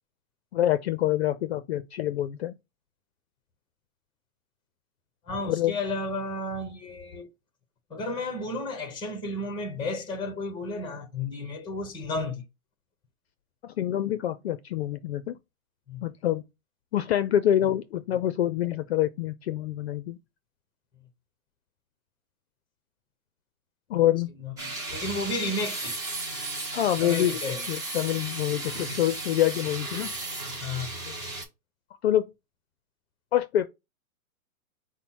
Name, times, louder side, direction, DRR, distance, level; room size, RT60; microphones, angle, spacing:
voice 1, 0.5-2.5 5.4-5.8 13.6-15.4 16.0-16.4 16.9-20.2 23.9-24.3 26.7-27.4 27.7-30.1 31.1-31.2 32.0-32.2 33.3-33.7, left 12 dB, 50° left, 0.5 m, -26 dB
voice 2, 5.3-7.3 7.9-12.4 15.9-16.0 24.4-26.0 27.0-27.7 30.6-30.9, left 2 dB, 10° left, 0.8 m, -32 dB
sound 1, 24.6-31.4, right 2 dB, 10° right, 0.5 m, -35 dB
5.2 x 2.1 x 4.5 m
hypercardioid pair, 145°, 42 cm